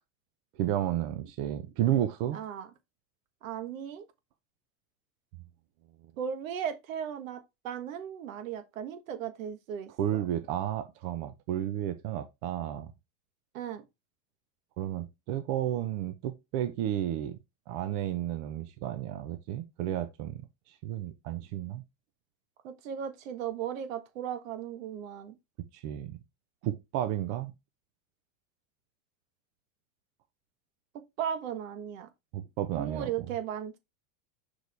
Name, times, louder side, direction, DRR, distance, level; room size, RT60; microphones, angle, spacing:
voice 1, 0.6-2.4 10.0-12.9 14.8-17.4 17.7-21.8 25.7-26.2 26.6-27.5 32.3-33.1, right 12 dB, 60° right, 0.9 m, -32 dB
voice 2, 2.3-2.7 3.4-4.0 6.2-10.2 13.5-13.8 22.6-25.3 31.2-32.1 32.7-33.8, right 9 dB, 85° right, 1.4 m, -36 dB
6.4 x 4.9 x 3.4 m
supercardioid pair, 125°, 39 cm